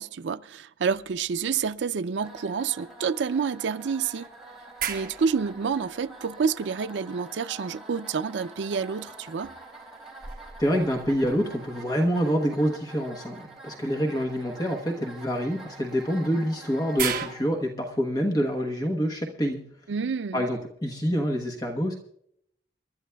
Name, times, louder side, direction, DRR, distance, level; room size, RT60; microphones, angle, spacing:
voice 1, 0.0-4.3 4.9-9.5 19.9-20.5, right 6 dB, 90° right, 0.4 m, -28 dB
sound 1, 0.9-2.2 2.6-2.7 3.7-7.1 8.9-12.0 13.7-13.9 16.0-17.3, right 8 dB, 50° right, 1.4 m, -38 dB
sound 2, 2.2-17.5, right 2 dB, ahead, 3.0 m, -46 dB
voice 2, 10.6-19.6 20.3-21.9, equal, 20° left, 1.1 m, -26 dB
28.0 x 12.0 x 2.3 m
head